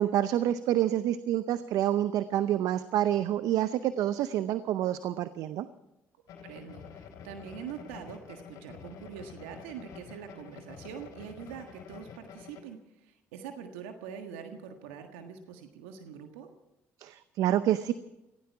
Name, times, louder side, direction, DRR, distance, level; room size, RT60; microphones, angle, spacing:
voice 1, 0.0-5.7 17.0-17.9, right 12 dB, 70° right, 13 dB, 0.7 m, -28 dB
sound 1, 6.3-12.6, left 7 dB, 70° left, 3.7 m, -48 dB
voice 2, 6.4-16.5, right 7 dB, 90° right, 5 dB, 1.6 m, -44 dB
18.5 x 16.0 x 4.7 m, 0.93 s
supercardioid pair, 65°, 6 cm